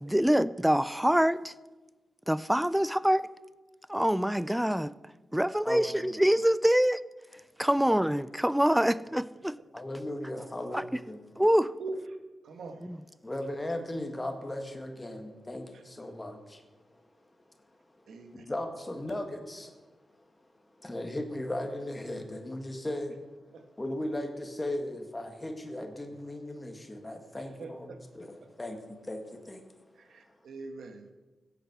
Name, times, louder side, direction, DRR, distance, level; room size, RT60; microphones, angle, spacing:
voice 1, 0.0-1.5 2.3-3.3 3.9-4.9 5.3-7.0 7.6-9.6 10.7-10.8 11.4-11.7 12.9-13.0, equal, 5° right, 0.4 m, -25 dB
voice 2, 5.7-6.2 9.7-11.2 13.2-16.7 18.3-19.7 20.8-23.2 23.8-29.6, left 1 dB, 15° left, 1.6 m, -37 dB
voice 3, 12.4-12.9 15.7-15.8 18.1-18.4 23.5-23.6 27.6-28.0 29.9-31.1, right 3 dB, 80° right, 1.5 m, -42 dB
15.5 x 8.3 x 6.0 m
wide cardioid pair, 135°, 0 cm